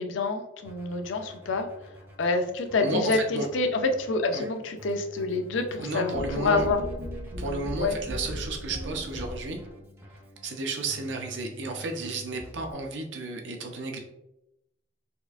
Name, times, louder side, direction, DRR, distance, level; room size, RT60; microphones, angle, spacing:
voice 1, 0.0-1.7 2.2-6.8 7.8-7.9, left 3 dB, 85° left, 5 dB, 0.5 m, -27 dB
Keyboard (musical), 0.6-12.7, equal, 10° right, 0.5 m, -48 dB
voice 2, 2.8-3.5 4.3-4.5 5.8-6.7 7.4-9.6 10.4-14.0, right 3 dB, 75° right, 3 dB, 0.6 m, -32 dB
sound 1, 6.1-9.7, equal, 60° right, 1.2 m, -36 dB
4.3 x 2.5 x 2.4 m, 0.87 s
head